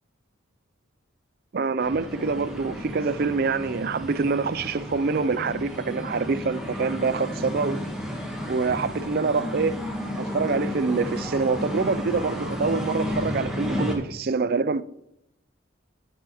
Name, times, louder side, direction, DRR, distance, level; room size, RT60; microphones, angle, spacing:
voice 1, 1.5-7.8 8.5-9.8 10.2-14.8, right 4 dB, 50° right, 0.4 m, -25 dB
sound 1, 1.8-13.9, left 1 dB, ahead, 2.0 m, -32 dB
12.0 x 7.8 x 3.5 m
head